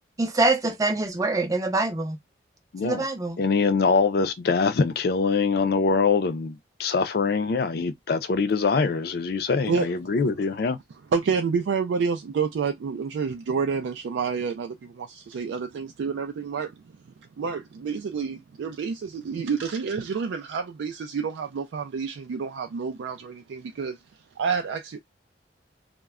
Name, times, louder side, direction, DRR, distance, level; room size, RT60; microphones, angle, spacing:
voice 1, 0.2-2.2 2.8-3.4, right 2 dB, 20° right, 0.4 m, -24 dB
voice 2, 2.7-3.1 3.4-10.8, left 4 dB, 55° left, 0.4 m, -23 dB
voice 3, 11.1-16.8 17.4-24.0 24.4-25.0, right 5 dB, 85° right, 0.3 m, -28 dB
2.1 x 2.0 x 3.5 m
head